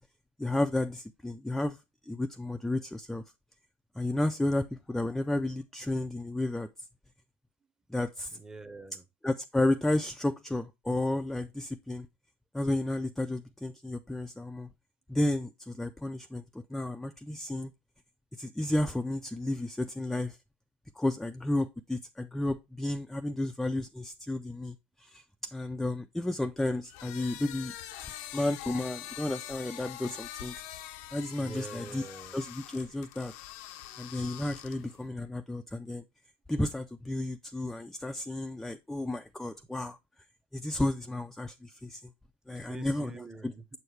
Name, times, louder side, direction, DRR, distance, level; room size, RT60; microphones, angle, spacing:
voice 1, 0.4-1.8 2.1-3.2 4.0-6.7 7.9-8.4 9.2-12.1 12.5-14.7 15.1-17.7 18.4-20.4 21.0-25.2 25.5-27.7 28.3-30.6 31.1-32.0 32.3-33.3 34.0-36.0 36.5-40.0 40.5-42.1 42.5-43.1 43.4-43.5, left 1 dB, 5° left, 0.3 m, -32 dB
voice 2, 8.3-9.0 31.4-32.4 42.5-43.6, right 3 dB, 15° right, 0.7 m, -45 dB
sound 1, 26.8-35.0, left 12 dB, 80° left, 0.6 m, -44 dB
7.0 x 4.6 x 3.2 m
supercardioid pair, 105°, 5 cm